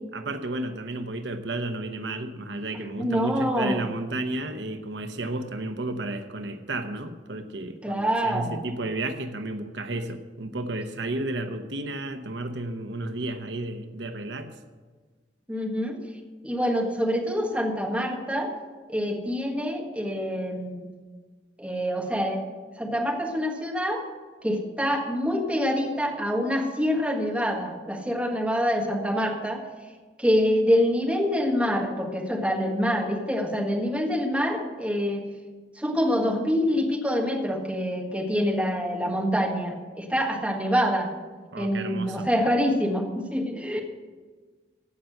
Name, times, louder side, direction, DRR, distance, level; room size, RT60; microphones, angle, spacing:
voice 1, 0.1-14.5 41.5-42.3, right 2 dB, 75° right, 8 dB, 0.9 m, -32 dB
voice 2, 2.7-3.8 7.8-8.6 15.5-16.0 16.4-18.5 18.9-20.9 21.6-22.4 22.8-24.0 24.4-29.6 30.2-35.3 35.7-41.1 41.6-43.8, equal, 5° right, 1 dB, 1.5 m, -26 dB
15.5 x 5.8 x 7.7 m, 1.4 s
head